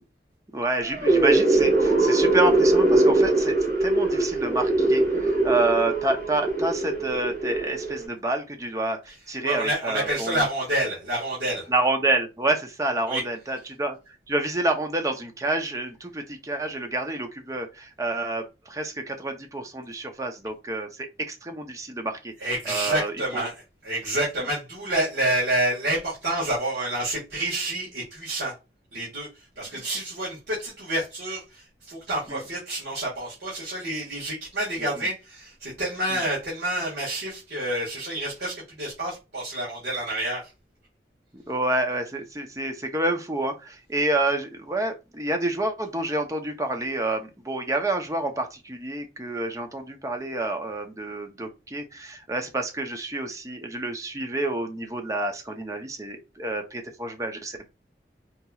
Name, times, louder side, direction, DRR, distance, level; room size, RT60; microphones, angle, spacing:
voice 1, 0.5-3.5 3.8-10.4 11.7-14.0 14.3-22.3 22.7-23.5 32.3-32.4 34.8-34.9 36.1-36.2 41.5-57.7, right 2 dB, 20° right, 0.6 m, -28 dB
sound 1, 0.8-8.1, right 2 dB, 55° right, 2.0 m, -22 dB
voice 2, 9.4-11.7 13.1-13.2 22.4-23.5 23.8-28.5 28.9-40.5, right 1 dB, 75° right, 1.7 m, -28 dB
4.3 x 2.9 x 2.3 m
head